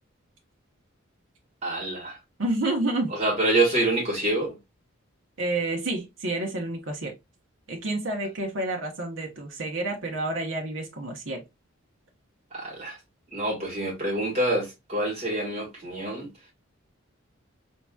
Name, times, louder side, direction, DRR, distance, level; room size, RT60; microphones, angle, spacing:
voice 1, 1.6-2.2 3.1-4.6 12.5-13.0 13.3-16.3, right 1 dB, 30° right, 1.8 m, -26 dB
voice 2, 2.4-3.1 5.4-7.1 7.7-11.4, right 2 dB, 65° right, 0.9 m, -29 dB
4.4 x 2.9 x 2.3 m
head